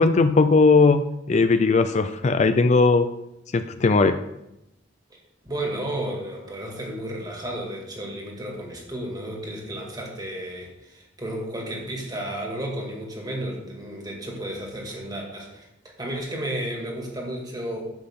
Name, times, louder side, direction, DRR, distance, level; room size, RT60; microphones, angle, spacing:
voice 1, 0.0-3.1 3.5-4.2, left 3 dB, 40° left, 9 dB, 0.4 m, -18 dB
voice 2, 5.4-15.7 16.0-17.9, right 1 dB, 20° right, 0 dB, 2.1 m, -32 dB
10.5 x 7.5 x 3.7 m, 0.87 s
head